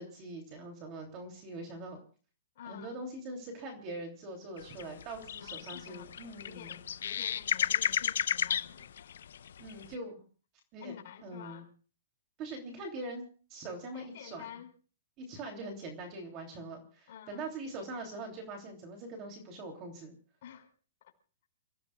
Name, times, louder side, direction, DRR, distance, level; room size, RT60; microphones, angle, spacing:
voice 1, 0.0-2.0 2.6-6.8 9.6-10.2 10.7-10.9 11.2-11.6 12.4-13.2 13.5-14.5 15.2-20.1, right 2 dB, 25° right, 2 dB, 3.0 m, -43 dB
voice 2, 2.6-3.0 5.4-9.3 10.8-11.7 13.9-14.7 17.1-17.5 20.4-20.7, left 9 dB, 50° left, 3 dB, 5.2 m, -50 dB
sound 1, 4.6-9.9, left 9 dB, 70° left, 0.6 m, -33 dB
29.5 x 16.5 x 2.4 m, 0.40 s
hypercardioid pair, 165°, 0 cm